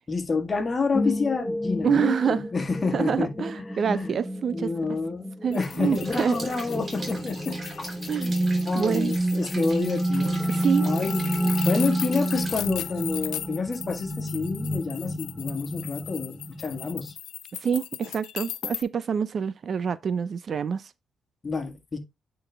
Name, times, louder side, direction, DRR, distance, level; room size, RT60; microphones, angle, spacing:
voice 1, 0.1-3.5 4.0-4.1 4.5-7.9 8.6-10.4 10.8-11.3 11.7-17.1 21.4-22.0, left 4 dB, 30° left, 1.8 m, -28 dB
sound 1, 0.9-17.1, right 1 dB, 5° left, 1.1 m, -30 dB
voice 2, 1.8-2.5 2.9-4.7 5.4-6.4 8.1-8.3 8.7-9.1 10.5-10.9 17.6-20.9, right 7 dB, 50° right, 0.5 m, -26 dB
sound 2, 5.5-18.8, left 13 dB, 85° left, 0.7 m, -38 dB
Rain, 5.9-12.6, right 2 dB, 35° right, 3.6 m, -42 dB
8.9 x 4.1 x 3.4 m
cardioid pair, 90°, 0 cm